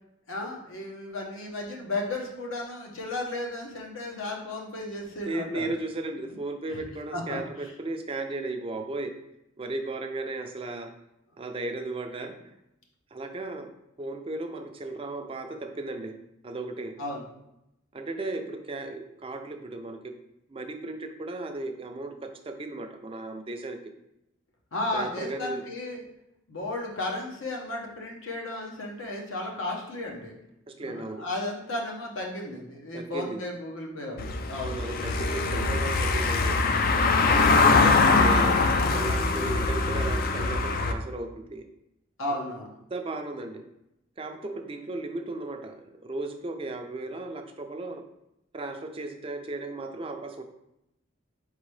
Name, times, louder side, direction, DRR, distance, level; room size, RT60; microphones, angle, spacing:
voice 1, 0.3-5.7 6.3-6.4 6.7-6.8 7.1-7.4 8.9-9.0 17.0-17.2 24.7-26.0 26.5-30.3 30.8-34.8 42.2-42.7, left 2 dB, 85° left, 0 dB, 1.0 m, -34 dB
voice 2, 5.2-9.1 9.6-11.0 11.4-12.5 13.1-13.7 14.0-17.0 17.9-20.1 20.5-23.8 24.9-25.6 30.7-31.2 32.9-33.4 34.6-36.7 37.3-41.7 42.3-42.4 42.9-43.7 44.2-48.0 48.5-50.4, right 2 dB, 30° right, 5 dB, 0.4 m, -35 dB
Car passing by / Engine, 34.2-40.9, left 3 dB, 45° left, 0.4 m, -23 dB
4.4 x 3.7 x 3.2 m, 0.84 s
head